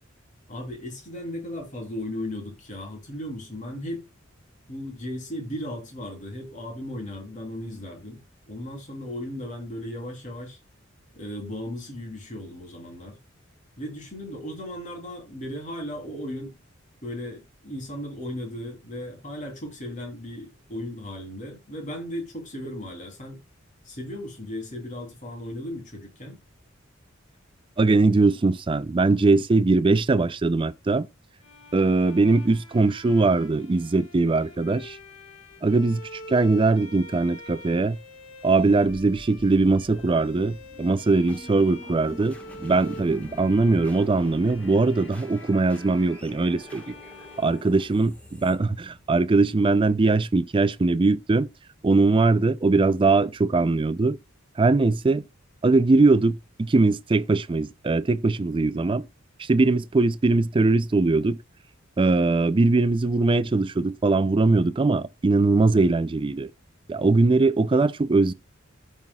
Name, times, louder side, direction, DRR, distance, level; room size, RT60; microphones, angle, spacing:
voice 1, 0.5-4.1 4.7-8.2 8.5-10.6 11.1-13.2 13.8-16.6 17.0-23.4 23.8-26.4, left 1 dB, 40° left, 3.1 m, -36 dB
voice 2, 27.8-31.1 31.7-35.0 35.6-38.0 38.4-42.4 42.6-46.9 47.4-51.5 51.8-54.2 54.6-55.2 55.6-59.0 59.4-61.4 62.0-66.5 66.9-68.3, right 3 dB, 25° right, 0.4 m, -21 dB
Bowed string instrument, 31.4-48.4, left 2 dB, 80° left, 1.7 m, -46 dB
sound 1, 39.1-49.6, equal, 5° left, 1.4 m, -46 dB
15.0 x 5.6 x 2.3 m
head